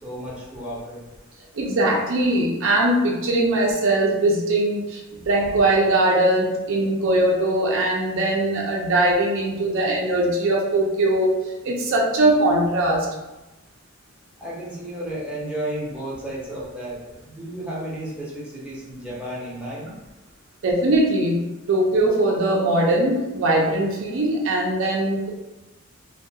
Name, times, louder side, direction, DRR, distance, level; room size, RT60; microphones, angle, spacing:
voice 1, 0.0-1.0 14.4-19.9, right 1 dB, 5° right, -8 dB, 0.6 m, -33 dB
voice 2, 1.5-5.0 5.3-11.4 11.6-13.1 20.6-21.4 21.7-25.3, right 1 dB, 60° right, -2 dB, 0.4 m, -20 dB
2.2 x 2.2 x 2.7 m, 1.0 s
head